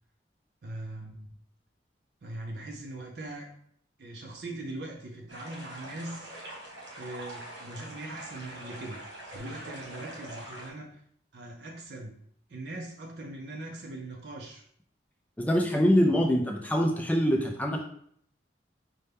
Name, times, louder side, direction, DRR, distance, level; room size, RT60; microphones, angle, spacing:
voice 1, 0.6-1.3 2.2-3.6 4.0-6.3 7.0-11.0 11.3-12.2 12.5-14.6, right 2 dB, 65° right, 0 dB, 0.5 m, -41 dB
sound 1, 5.3-10.7, right 1 dB, 85° right, 1.3 m, -44 dB
voice 2, 15.4-17.9, equal, 10° left, 2 dB, 0.3 m, -24 dB
5.3 x 2.2 x 3.3 m, 0.64 s
head